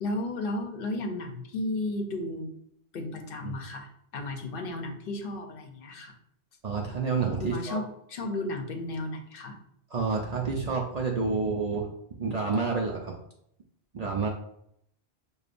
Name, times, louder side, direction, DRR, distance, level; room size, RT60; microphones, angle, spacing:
voice 1, 0.0-2.5 2.9-6.1 7.4-9.6, left 2 dB, 65° left, 4 dB, 0.8 m, -34 dB
voice 2, 6.6-7.8 9.9-11.9 12.2-13.1 13.9-14.3, right 4 dB, 50° right, -1 dB, 0.5 m, -29 dB
6.6 x 2.3 x 2.5 m, 0.73 s
omnidirectional pair, 1.1 m